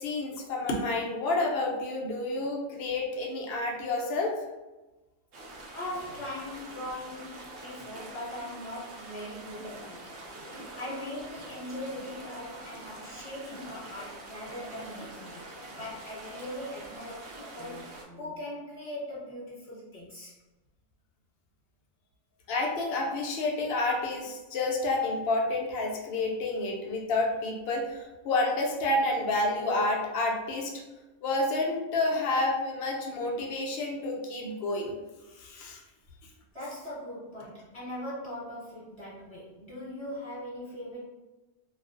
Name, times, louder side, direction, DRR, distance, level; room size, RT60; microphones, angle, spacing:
voice 1, 0.0-4.3 22.5-30.7 31.2-34.9 35.4-35.8, left 2 dB, 75° left, -1 dB, 0.5 m, -29 dB
sound 1, 5.3-18.0, right 2 dB, 65° right, 0.7 m, -45 dB
voice 2, 5.7-10.2 10.5-20.3 36.5-41.1, left 1 dB, 20° left, -10 dB, 1.2 m, -40 dB
2.4 x 2.3 x 2.3 m, 1.1 s
omnidirectional pair, 1.5 m